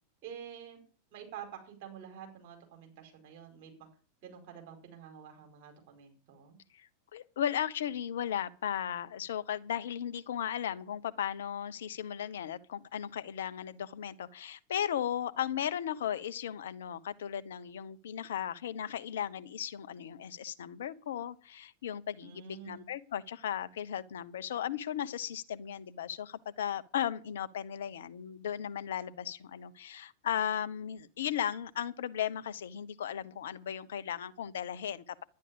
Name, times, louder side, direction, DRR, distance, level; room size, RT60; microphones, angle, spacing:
voice 1, 0.2-0.8 1.1-3.9 4.2-6.6 22.2-22.9, right 8 dB, 45° right, 4 dB, 4.8 m, -48 dB
voice 2, 6.7-35.2, left 9 dB, 60° left, 13 dB, 0.9 m, -36 dB
11.5 x 10.0 x 7.2 m, 0.41 s
figure-of-eight pair, 90°, 0 cm